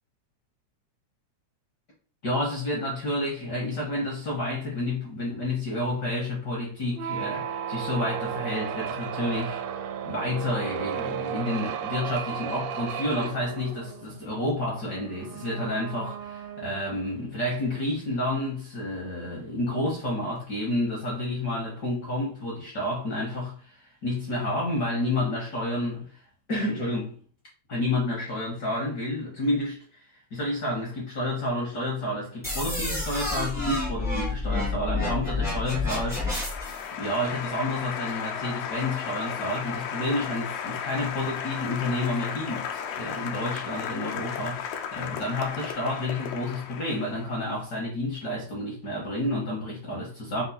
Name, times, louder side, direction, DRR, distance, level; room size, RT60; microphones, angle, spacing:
voice 1, 2.2-26.2 26.5-27.2 27.7-50.4, left 1 dB, 60° left, 1.0 m, -30 dB
sound 1, 6.9-17.2, right 8 dB, 80° right, 1.5 m, -34 dB
sound 2, 32.4-36.8, left 2 dB, 5° right, 0.4 m, -29 dB
Applause, 35.0-47.4, left 7 dB, 80° left, 1.7 m, -35 dB
5.4 x 2.2 x 4.1 m
omnidirectional pair, 3.4 m